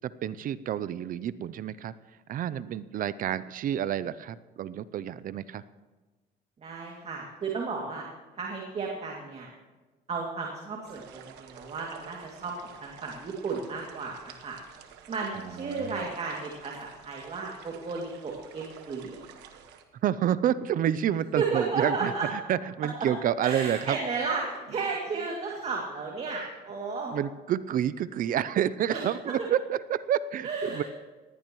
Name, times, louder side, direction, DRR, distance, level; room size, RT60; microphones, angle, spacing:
voice 1, 0.0-1.9 2.3-5.6 15.6-16.0 20.0-24.0 27.1-30.8, right 10 dB, 55° right, 16 dB, 0.5 m, -29 dB
voice 2, 6.6-8.1 8.4-9.5 10.1-14.6 15.1-19.2 21.4-22.3 23.0-23.1 23.4-27.1 28.9-29.5 30.4-30.8, right 4 dB, 40° right, -1 dB, 2.5 m, -33 dB
sound 1, 10.8-19.8, right 7 dB, 90° right, 1.4 m, -50 dB
19.5 x 16.0 x 3.1 m, 1.3 s
cardioid pair, 110°, 17 cm